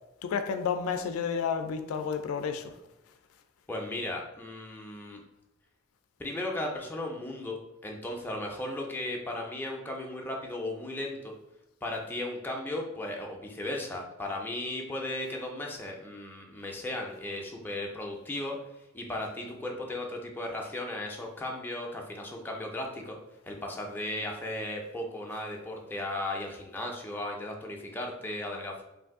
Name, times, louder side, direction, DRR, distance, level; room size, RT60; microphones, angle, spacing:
voice 1, 0.2-2.7, left 6 dB, 85° left, 0.3 m, -31 dB
voice 2, 3.7-5.2 6.2-11.3 11.8-18.6 18.9-23.2 23.5-28.8, left 1 dB, 10° left, 0.4 m, -36 dB
2.6 x 2.5 x 3.5 m
head